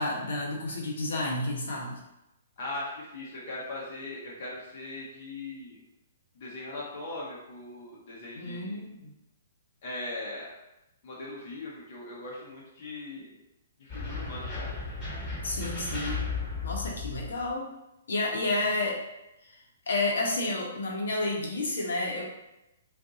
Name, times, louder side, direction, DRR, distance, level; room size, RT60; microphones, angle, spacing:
voice 1, 0.0-2.0 8.3-9.1 15.4-16.3 16.6-17.7 18.1-19.0 19.5-19.6 19.9-22.2, left 2 dB, 80° left, -1 dB, 1.0 m, -30 dB
voice 2, 2.6-5.8 6.4-8.8 9.8-10.5 11.0-13.3 13.8-14.7, left 2 dB, 50° left, -5 dB, 1.0 m, -39 dB
sound 1, 13.9-17.5, left 3 dB, 20° left, 1.3 m, -35 dB
2.7 x 2.5 x 3.7 m, 0.92 s
hypercardioid pair, 150°, 0 cm